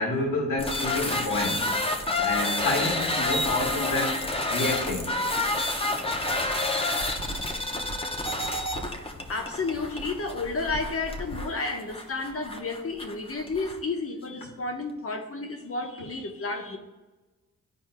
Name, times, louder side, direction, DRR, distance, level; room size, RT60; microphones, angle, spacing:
voice 1, 0.0-1.7 2.2-4.2 4.5-5.4, left 2 dB, 75° left, -2 dB, 2.0 m, -29 dB
sound 1, 0.6-13.8, left 2 dB, 15° left, 0.7 m, -29 dB
voice 2, 9.3-16.8, left 3 dB, 40° left, 3 dB, 1.0 m, -31 dB
12.5 x 4.4 x 2.2 m, 1.2 s
cardioid pair, 75°, 35 cm